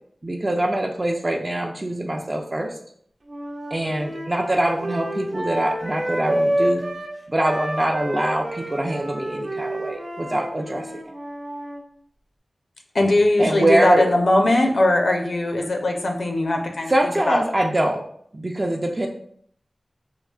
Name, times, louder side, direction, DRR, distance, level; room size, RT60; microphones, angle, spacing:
voice 1, 0.2-2.7 3.7-6.8 7.3-10.8 13.4-14.0 16.9-18.0 18.3-19.1, right 1 dB, 35° right, 1 dB, 0.3 m, -23 dB
sound 1, 3.3-7.1 7.4-11.8, right 1 dB, 55° right, 0.7 m, -29 dB
voice 2, 12.9-16.9 17.3-17.4, left 1 dB, 80° left, 2 dB, 0.5 m, -19 dB
4.7 x 2.3 x 2.3 m, 0.65 s
wide cardioid pair, 70°, 0 cm